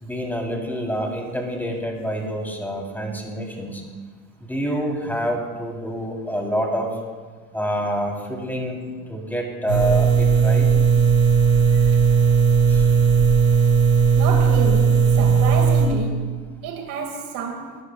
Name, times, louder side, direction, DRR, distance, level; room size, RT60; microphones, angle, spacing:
voice 1, 0.0-3.8 4.4-6.9 7.5-8.8 9.1-10.7 12.7-12.8, equal, 5° left, 3.2 m, -27 dB
sound 1, 9.7-15.9, right 6 dB, 90° right, 4.5 m, -16 dB
voice 2, 14.2-16.3 16.6-17.8, right 5 dB, 50° right, 2.0 m, -29 dB
22.0 x 15.0 x 2.3 m
hypercardioid pair, 80°, 42 cm